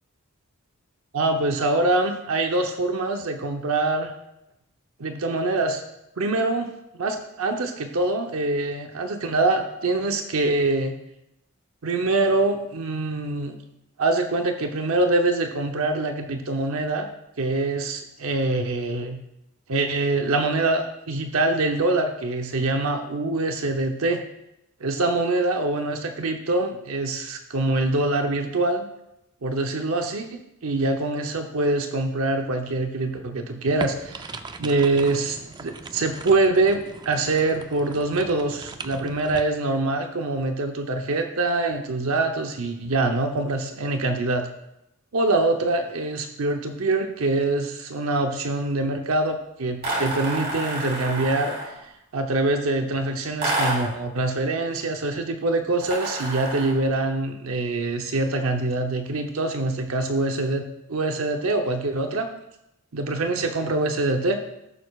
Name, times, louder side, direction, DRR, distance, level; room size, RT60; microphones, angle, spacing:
voice 1, 1.1-4.1 5.0-5.8 6.2-10.9 11.8-13.6 14.0-17.1 17.4-19.2 19.7-24.2 24.8-28.9 29.4-44.5 45.1-51.7 52.1-60.6 60.9-62.3 62.9-64.4, right 2 dB, 80° right, 5 dB, 0.8 m, -24 dB
sound 1, 33.8-39.4, right 3 dB, 20° right, 0.4 m, -39 dB
sound 2, 49.8-51.8 53.4-54.0 55.8-56.8, right 2 dB, 45° right, 3.5 m, -28 dB
15.0 x 6.7 x 2.4 m, 0.86 s
head